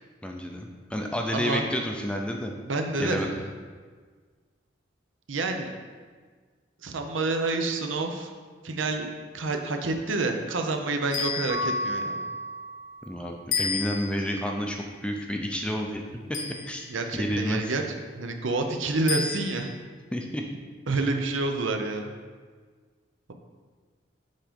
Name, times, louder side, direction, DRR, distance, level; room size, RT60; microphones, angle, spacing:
voice 1, 0.2-2.5 3.0-3.3 13.1-14.8 15.0-16.0 16.7-16.8 17.1-17.6 20.1-20.6, equal, 5° left, 2 dB, 0.5 m, -30 dB
voice 2, 1.3-1.7 2.7-3.3 5.3-5.7 6.8-8.3 8.6-9.1 9.3-12.2 16.9-17.8 18.2-19.7 20.9-22.1, right 3 dB, 75° right, 5 dB, 0.7 m, -28 dB
sound 1, 11.1-12.0 13.5-14.4 16.3-17.1 19.1-19.8, left 5 dB, 40° left, 0.8 m, -32 dB
Mallet percussion, 11.5-13.3, equal, 30° right, 0.7 m, -32 dB
7.4 x 3.8 x 5.2 m, 1.5 s
head